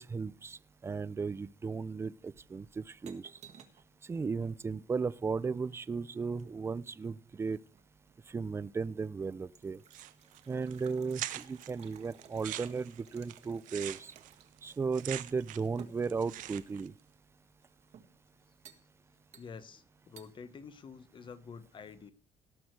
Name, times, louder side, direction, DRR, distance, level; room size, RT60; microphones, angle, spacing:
voice 1, 0.0-3.3 4.1-7.6 8.3-9.8 10.5-14.1 14.6-16.9, right 5 dB, 20° right, 0.4 m, -35 dB
sound 1, 2.3-3.9 5.4-6.8 7.5-8.2 8.7-8.8 9.1-14.7 14.9-15.0 15.8-16.8 17.6-18.2 18.6-18.9 19.3-19.8 20.2-20.3, right 8 dB, 55° right, 1.6 m, -57 dB
sound 2, 9.9-10.4 10.7-10.8 11.1-11.7 12.2-15.8 16.0-16.9, right 14 dB, 80° right, 0.8 m, -42 dB
voice 2, 19.4-22.1, left 5 dB, 35° left, 1.1 m, -48 dB
18.0 x 6.3 x 4.7 m
cardioid pair, 125°, 13 cm